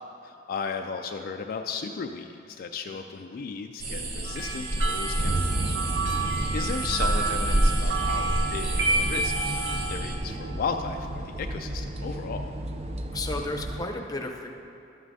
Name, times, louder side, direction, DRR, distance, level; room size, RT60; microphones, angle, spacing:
voice 1, 0.2-5.8 6.5-9.3 9.9-12.5, left 5 dB, 55° left, 5 dB, 0.3 m, -35 dB
sound 1, 3.8-10.2, right 1 dB, 55° right, 0.9 m, -29 dB
sound 2, 4.2-9.9, right 3 dB, 90° right, 1.4 m, -30 dB
sound 3, 5.2-13.9, right 1 dB, 35° right, 0.4 m, -33 dB
voice 2, 13.1-14.5, left 2 dB, 20° left, 2 dB, 0.7 m, -33 dB
12.5 x 9.3 x 2.7 m, 2.8 s
head